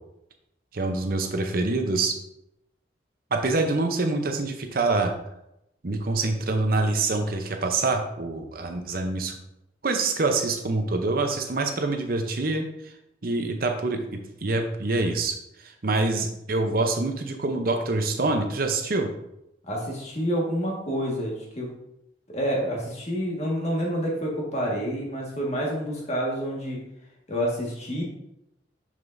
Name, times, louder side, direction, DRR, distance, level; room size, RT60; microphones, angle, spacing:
voice 1, 0.7-2.2 3.3-5.1 5.8-9.3 9.8-12.9 13.2-19.1, right 3 dB, 50° right, 5 dB, 0.7 m, -26 dB
voice 2, 19.6-21.7 22.3-26.8 27.3-28.0, equal, 35° left, -2 dB, 1.6 m, -28 dB
6.7 x 6.5 x 2.6 m, 0.83 s
head